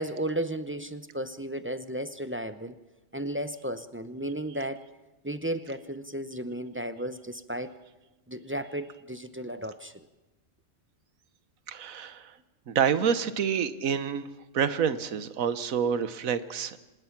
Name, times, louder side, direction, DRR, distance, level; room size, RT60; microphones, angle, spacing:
voice 1, 0.0-2.8 3.1-4.8 5.2-7.7 8.3-10.1, right 1 dB, 15° right, 11 dB, 0.4 m, -34 dB
voice 2, 11.7-12.4 12.7-14.3 14.5-16.8, right 7 dB, 90° right, 14 dB, 1.4 m, -28 dB
26.0 x 19.5 x 6.0 m, 1.1 s
omnidirectional pair, 1.4 m